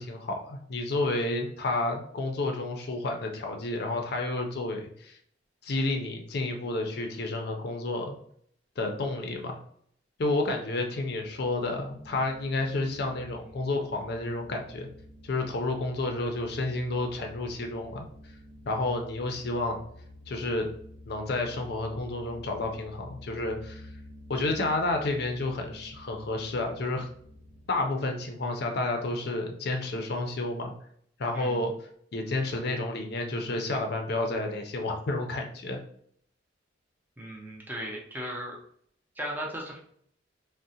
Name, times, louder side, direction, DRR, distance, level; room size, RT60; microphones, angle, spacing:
voice 1, 0.0-5.2 5.6-8.2 8.8-9.6 10.2-14.9 15.2-18.1 18.7-19.8 20.3-20.7 21.1-23.9 24.3-27.1 27.7-30.7 31.2-31.7 32.1-35.8, left 2 dB, 55° left, 3 dB, 0.4 m, -30 dB
sound 1, 11.0-27.9, left 1 dB, 70° right, 0.5 m, -50 dB
voice 2, 37.2-38.6 39.2-39.9, equal, 10° right, -3 dB, 0.5 m, -36 dB
3.6 x 2.1 x 2.7 m, 0.64 s
head